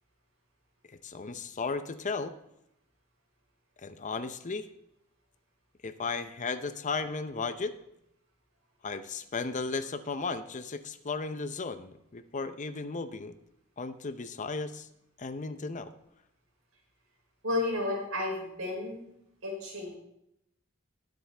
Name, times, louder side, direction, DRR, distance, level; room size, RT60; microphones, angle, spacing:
voice 1, 1.0-2.4 3.8-4.7 5.8-7.7 8.8-13.3 13.8-14.9 15.2-15.9, left 4 dB, 35° left, 11 dB, 0.6 m, -35 dB
voice 2, 17.4-19.1 19.4-19.9, left 2 dB, 85° right, -2 dB, 4.9 m, -32 dB
20.0 x 7.7 x 3.4 m, 0.81 s
head